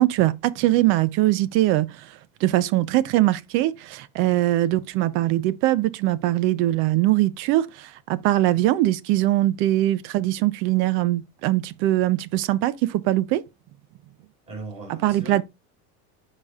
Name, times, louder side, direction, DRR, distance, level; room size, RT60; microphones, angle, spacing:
voice 1, 0.0-13.4 14.9-15.4, right 15 dB, 40° right, 0.4 m, -22 dB
voice 2, 14.5-15.4, right 3 dB, 20° right, 4.4 m, -38 dB
13.5 x 5.0 x 2.3 m
cardioid pair, 180°, 33 cm